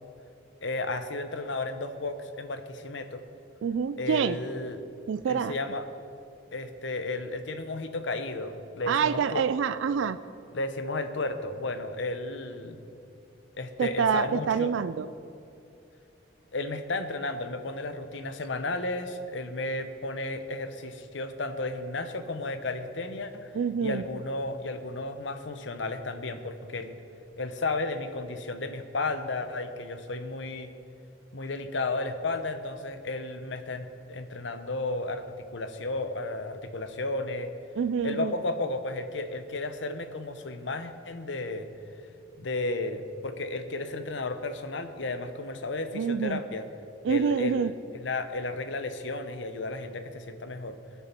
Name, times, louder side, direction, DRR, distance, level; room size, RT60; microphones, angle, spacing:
voice 1, 0.6-3.2 4.0-4.8 5.2-5.8 6.5-9.4 10.5-12.8 13.6-14.7 16.5-23.5 23.8-27.0 27.4-30.7 31.3-37.5 38.0-41.7 42.4-46.7 47.1-47.7 48.0-50.8, left 2 dB, 70° left, 9 dB, 0.9 m, -33 dB
voice 2, 3.6-4.4 5.1-5.6 8.9-10.2 13.8-15.1 23.5-24.0 37.8-38.3 45.9-46.4 47.0-47.7, right 6 dB, 80° right, 13 dB, 0.3 m, -27 dB
19.5 x 7.0 x 4.5 m, 2.6 s
head